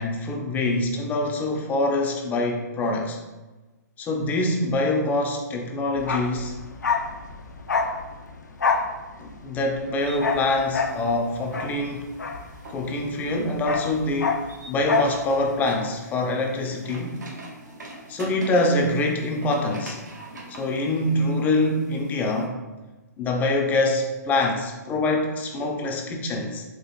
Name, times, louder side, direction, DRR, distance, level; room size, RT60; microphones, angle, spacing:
voice 1, 0.0-3.2 4.0-6.5 9.2-12.1 12.7-14.4 14.7-17.2 18.1-20.0 20.5-22.6 23.2-26.6, left 2 dB, 15° left, 2 dB, 0.4 m, -25 dB
Bark, 6.0-13.0 13.3-15.2 15.4-15.6, left 5 dB, 80° left, 0.4 m, -27 dB
sound 1, 10.0-22.5, right 1 dB, 80° right, 0.8 m, -43 dB
4.4 x 2.4 x 2.4 m, 1.2 s
figure-of-eight pair, 120°, 9 cm